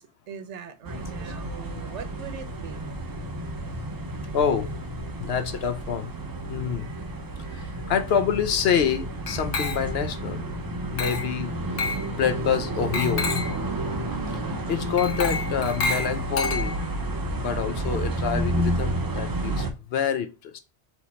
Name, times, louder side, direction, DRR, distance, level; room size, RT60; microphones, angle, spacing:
voice 1, 0.0-2.9, right 7 dB, 80° right, 1.0 m, -41 dB
sound 1, 0.8-19.7, right 1 dB, 35° right, 0.3 m, -31 dB
voice 2, 0.9-1.3 4.3-4.7 5.2-6.1 6.5-6.9 7.4-10.5 10.8-13.3 14.3-16.7 17.3-20.6, left 7 dB, 65° left, 0.8 m, -27 dB
Motor vehicle (road), 2.2-2.4 2.7-17.2 17.5-18.0, equal, 35° left, 1.6 m, -47 dB
Glass, 9.3-10.1 11.0-11.4 11.8-12.1 12.9-13.6 15.0-17.0, left 3 dB, 80° left, 1.2 m, -30 dB
4.3 x 2.8 x 4.2 m
omnidirectional pair, 1.2 m